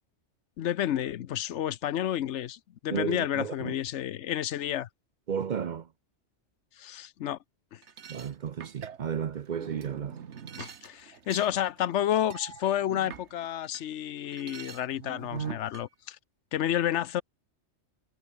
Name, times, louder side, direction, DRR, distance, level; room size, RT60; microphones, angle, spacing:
voice 1, 0.6-4.9 6.8-7.4 7.7-7.8 10.6-16.2 16.5-17.2, left 11 dB, 85° left, 1.0 m, -30 dB
voice 2, 2.9-3.8 5.3-5.9 8.1-10.2, right 7 dB, 50° right, 0.6 m, -33 dB
sound 1, 7.8-13.8 14.2-15.8, right 7 dB, 75° right, 1.4 m, -43 dB
omnidirectional pair, 1.2 m